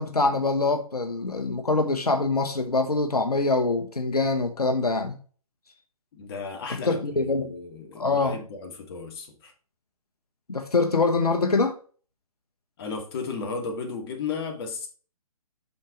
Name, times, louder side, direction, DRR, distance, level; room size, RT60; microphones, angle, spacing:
voice 1, 0.0-5.2 6.7-7.5 8.0-8.4 10.5-11.8, left 3 dB, 90° left, 1.2 m, -24 dB
voice 2, 6.1-9.5 12.8-14.9, left 5 dB, 40° left, 2.3 m, -34 dB
8.4 x 6.0 x 3.1 m
figure-of-eight pair, 135°, 19 cm